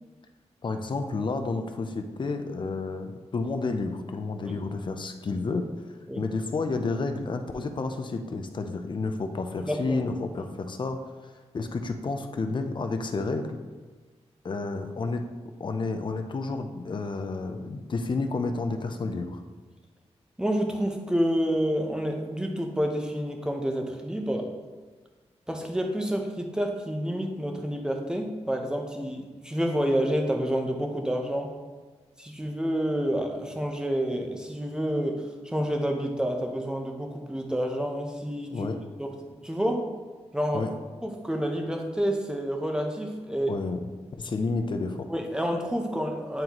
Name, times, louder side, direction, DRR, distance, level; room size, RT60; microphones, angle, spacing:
voice 1, 0.6-5.7 6.2-11.0 11.5-13.6 14.4-15.3 15.6-19.4 38.5-38.8 40.5-40.7 43.5-43.8 44.2-45.1, left 3 dB, 45° left, 7 dB, 0.5 m, -30 dB
voice 2, 9.6-10.0 20.4-24.5 25.5-31.5 32.2-38.7 39.0-39.9 40.3-40.7 41.0-43.6 45.1-46.4, equal, 5° right, 3 dB, 0.7 m, -29 dB
9.0 x 3.9 x 2.9 m, 1.4 s
wide cardioid pair, 120°, 11 cm